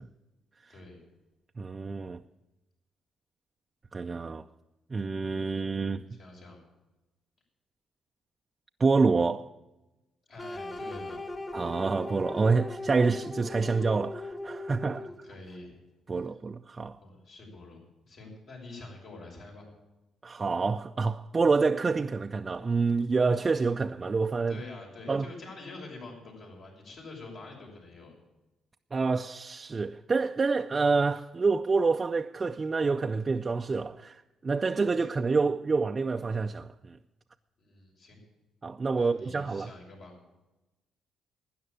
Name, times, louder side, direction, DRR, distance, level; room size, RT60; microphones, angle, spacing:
voice 1, 0.7-1.0 5.2-5.4 6.1-6.6 10.3-11.2 14.7-15.8 17.0-17.8 18.1-19.7 24.5-28.1 37.6-38.2 39.0-40.1, left 2 dB, 65° left, 6.3 m, -46 dB
voice 2, 1.6-2.2 3.9-4.5 4.9-6.0 8.8-9.5 11.5-15.1 16.1-17.0 20.2-24.6 25.1-25.3 28.9-37.0 38.6-39.7, right 4 dB, 35° right, 0.5 m, -27 dB
sound 1, 10.4-15.3, left 2 dB, 30° left, 1.9 m, -39 dB
12.5 x 9.6 x 8.8 m
cardioid pair, 80°, 0 cm